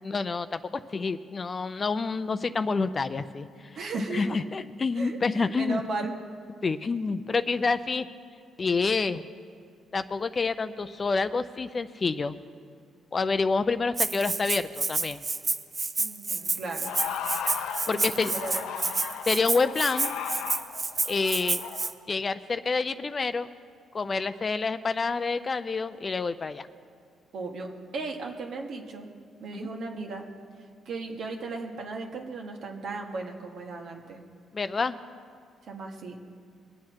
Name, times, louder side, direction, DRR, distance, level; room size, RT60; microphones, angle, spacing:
voice 1, 0.0-3.5 4.1-5.8 6.6-8.1 8.6-9.2 9.9-12.4 13.1-15.2 17.9-18.3 19.3-20.1 21.1-21.6 22.1-23.5 23.9-26.7 29.5-29.7 34.5-35.0, left 4 dB, 35° left, 12 dB, 0.5 m, -28 dB
voice 2, 3.7-4.4 4.9-6.1 16.0-16.9 17.9-18.8 27.3-29.1 29.4-30.2 30.8-34.2 35.6-36.2, right 3 dB, 65° right, 2 dB, 1.6 m, -36 dB
Rattle (instrument), 14.0-21.9, right 3 dB, 30° right, 0.7 m, -29 dB
sound 1, 16.8-21.9, left 8 dB, 90° left, 0.7 m, -36 dB
22.0 x 8.6 x 4.7 m, 2.2 s
cardioid pair, 90°, 0 cm